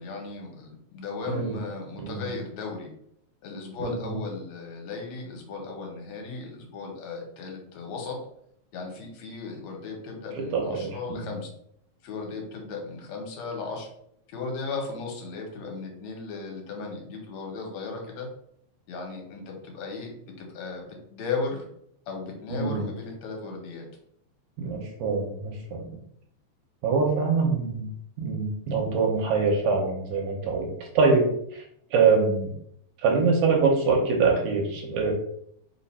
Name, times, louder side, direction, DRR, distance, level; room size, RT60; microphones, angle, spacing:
voice 1, 0.0-2.9 3.4-8.2 8.7-11.5 12.0-13.9 14.3-18.3 18.9-21.7 22.1-23.9, left 4 dB, 70° left, 1 dB, 2.1 m, -36 dB
voice 2, 3.8-4.2 10.5-11.3 22.5-22.8 24.6-25.9 26.8-27.8 28.2-31.3 31.5-31.6 31.9-32.5 33.0-35.1, right 4 dB, 75° right, 1 dB, 2.1 m, -24 dB
4.7 x 2.4 x 4.2 m, 0.71 s
omnidirectional pair, 3.5 m